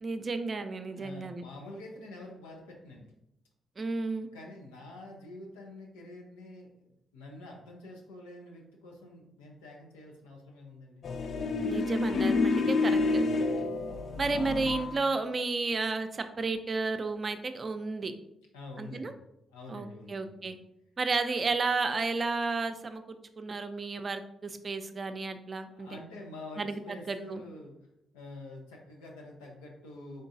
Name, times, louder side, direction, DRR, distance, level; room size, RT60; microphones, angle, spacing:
voice 1, 0.0-1.4 3.8-4.3 11.6-13.2 14.2-18.1 18.8-19.1 19.7-20.6 21.0-25.9 26.6-27.4, right 3 dB, 45° right, 8 dB, 0.4 m, -32 dB
voice 2, 0.9-3.1 4.2-6.7 7.1-11.1 14.3-14.5 18.5-19.1 19.5-20.5 25.7-27.8 28.1-30.2, left 2 dB, 90° left, -1 dB, 0.7 m, -47 dB
sound 1, 11.0-15.0, left 3 dB, 60° left, 0.3 m, -28 dB
3.8 x 3.7 x 2.7 m, 0.84 s
hypercardioid pair, 45°, 0 cm